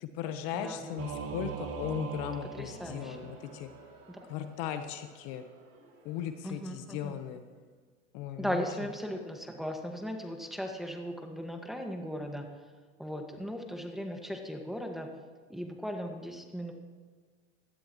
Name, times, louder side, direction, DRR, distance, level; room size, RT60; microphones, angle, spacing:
voice 1, 0.0-3.7 4.3-5.4 6.0-7.4 8.1-8.7, left 9 dB, 65° left, 8 dB, 1.2 m, -37 dB
voice 2, 0.5-1.0 2.5-3.3 4.1-4.2 6.4-7.1 8.4-12.7 13.0-15.1 15.5-16.7, equal, ahead, 2 dB, 1.8 m, -37 dB
Singing / Musical instrument, 1.0-3.8, right 6 dB, 45° right, 1.4 m, -40 dB
Crowd, 2.6-7.6, right 3 dB, 70° right, 3.4 m, -58 dB
17.5 x 12.5 x 3.2 m, 1.5 s
hypercardioid pair, 95°, 33 cm